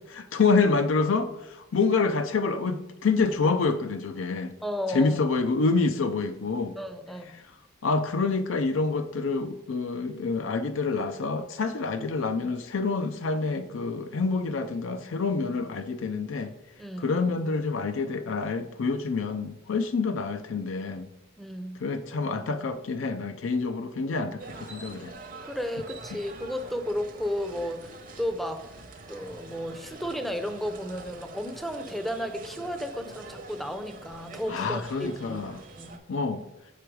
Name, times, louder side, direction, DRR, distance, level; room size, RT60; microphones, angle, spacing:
voice 1, 0.1-4.5 4.9-6.8 7.8-16.5 17.0-21.1 21.8-25.1 34.5-35.6 36.1-36.4, left 4 dB, 85° left, 8 dB, 0.5 m, -27 dB
voice 2, 4.6-5.2 6.8-7.3 16.8-17.2 21.4-21.8 25.4-28.6 29.1-35.4 35.8-36.0, left 1 dB, ahead, 7 dB, 0.5 m, -33 dB
sound 1, 24.4-36.0, right 3 dB, 45° right, 0.8 m, -45 dB
6.8 x 5.0 x 4.6 m, 0.92 s
head